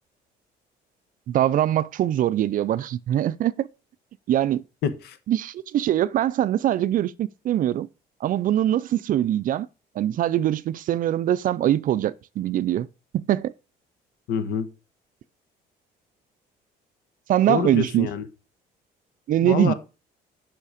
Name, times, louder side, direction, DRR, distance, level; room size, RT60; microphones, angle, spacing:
voice 1, 1.3-3.7 4.3-4.6 5.3-7.9 8.2-9.7 10.0-12.9 13.1-13.5 17.3-18.1 19.3-19.7, right 12 dB, 55° right, 0.5 m, -23 dB
voice 2, 4.8-5.2 14.3-14.7 17.5-18.3 19.4-19.7, left 7 dB, 75° left, 1.2 m, -26 dB
8.3 x 5.7 x 5.0 m
cardioid pair, 110°, 17 cm